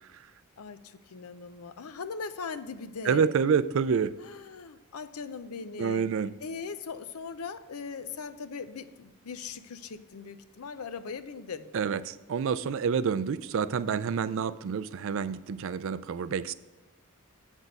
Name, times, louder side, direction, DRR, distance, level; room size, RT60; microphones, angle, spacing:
voice 1, 0.6-3.3 4.2-6.1 6.4-11.7, left 5 dB, 80° left, 12 dB, 0.6 m, -40 dB
voice 2, 3.0-4.2 5.8-6.3 11.7-16.5, right 6 dB, 60° right, 16 dB, 0.4 m, -28 dB
8.1 x 6.1 x 5.2 m, 1.2 s
head